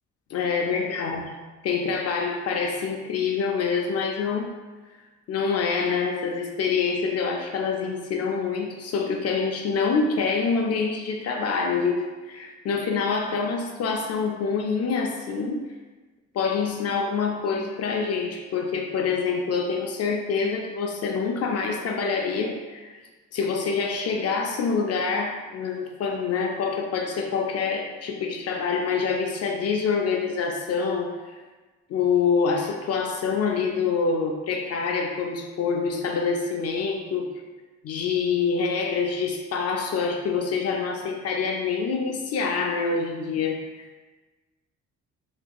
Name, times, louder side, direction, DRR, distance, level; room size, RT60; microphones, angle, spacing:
voice 1, 0.3-1.3 1.6-4.5 5.3-15.7 16.3-22.9 23.3-31.1 31.9-37.3 37.8-44.0, left 5 dB, 55° left, 2 dB, 0.4 m, -26 dB
3.4 x 2.8 x 2.3 m, 1.3 s
cardioid pair, 90°, 30 cm